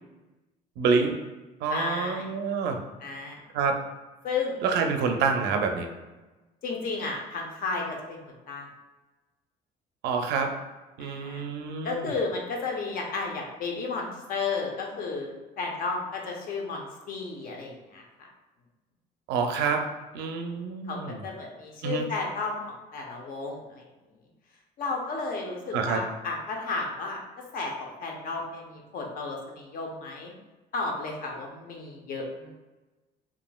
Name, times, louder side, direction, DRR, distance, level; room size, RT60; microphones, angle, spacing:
voice 1, 0.8-1.2 1.6-2.8 3.5-3.8 4.6-5.9 10.0-10.5 11.0-12.1 19.3-19.8 20.1-21.2 21.8-22.1 25.7-26.0, right 5 dB, 80° right, 5 dB, 0.4 m, -27 dB
voice 2, 1.7-2.3 3.0-3.4 4.2-4.6 6.6-8.7 11.0-11.4 11.8-18.0 19.5-19.7 20.9-21.0 21.2-22.6 22.9-23.8 24.8-27.2 27.5-30.3 30.7-32.5, left 4 dB, 55° left, 0 dB, 0.6 m, -33 dB
2.9 x 2.4 x 2.3 m, 1.2 s
cardioid pair, 110°, 17 cm